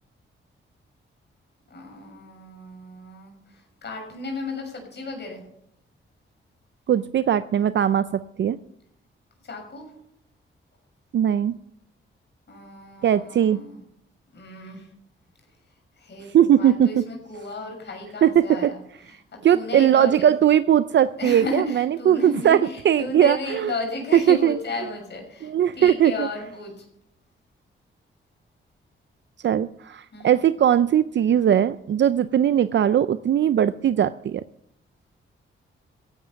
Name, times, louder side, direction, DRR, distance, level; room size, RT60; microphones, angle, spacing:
voice 1, 1.7-5.4 9.4-9.9 12.5-13.8 14.3-14.9 16.0-20.4 21.2-26.8 30.1-30.4, left 2 dB, 55° left, 2 dB, 6.5 m, -34 dB
voice 2, 6.9-8.6 11.1-11.6 13.0-13.6 16.3-17.0 18.2-18.7 19.4-22.6 22.8-23.7 24.1-24.6 25.4-26.3 29.4-34.4, right 10 dB, 60° right, 13 dB, 0.5 m, -19 dB
15.5 x 11.0 x 5.8 m, 0.75 s
cardioid pair, 95°, 21 cm